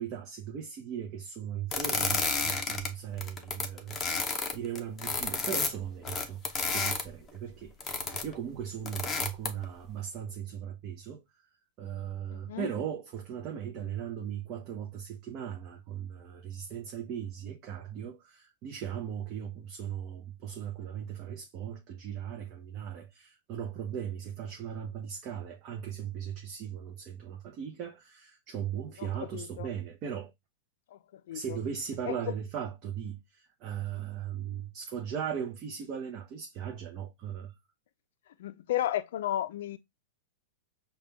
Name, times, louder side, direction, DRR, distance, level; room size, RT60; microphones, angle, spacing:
voice 1, 0.0-4.0 4.5-6.4 6.7-7.7 8.1-11.2 11.8-30.3 31.3-37.5, right 8 dB, 35° right, 0.6 m, -38 dB
sound 1, 1.7-2.9 3.2-7.0 7.8-8.3 8.9-9.6, left 4 dB, 15° left, 0.7 m, -31 dB
voice 2, 12.3-12.7 29.0-29.1 29.3-29.7 30.9-31.6 32.1-32.2 38.4-39.8, left 12 dB, 70° left, 0.4 m, -33 dB
5.0 x 2.3 x 3.2 m
hypercardioid pair, 145°, 0 cm